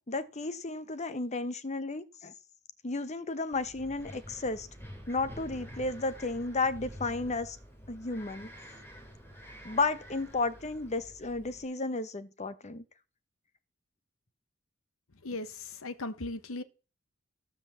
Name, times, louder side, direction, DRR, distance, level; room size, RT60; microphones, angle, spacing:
voice 1, 0.1-2.3 2.8-4.7 5.1-7.6 7.9-8.5 9.6-12.8, left 3 dB, 35° left, 0.9 m, -33 dB
Wind, 3.5-11.6, equal, 10° left, 2.7 m, -48 dB
voice 2, 15.2-16.6, left 2 dB, 75° left, 1.1 m, -37 dB
15.5 x 5.2 x 7.1 m
head